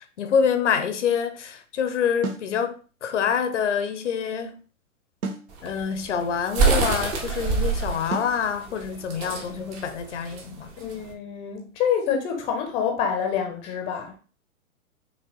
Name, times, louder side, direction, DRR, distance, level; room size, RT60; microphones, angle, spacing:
voice 1, 0.2-4.6 5.6-10.7, left 7 dB, 55° left, 0.6 m, -26 dB
sound 1, 2.2-2.5 5.2-5.5 8.1-8.4, right 3 dB, 85° right, 0.7 m, -31 dB
sound 2, 5.5-11.1, right 4 dB, 25° right, 0.7 m, -26 dB
voice 2, 10.8-14.1, left 7 dB, 15° left, 0.6 m, -27 dB
4.9 x 2.9 x 3.0 m
figure-of-eight pair, 115°, 42 cm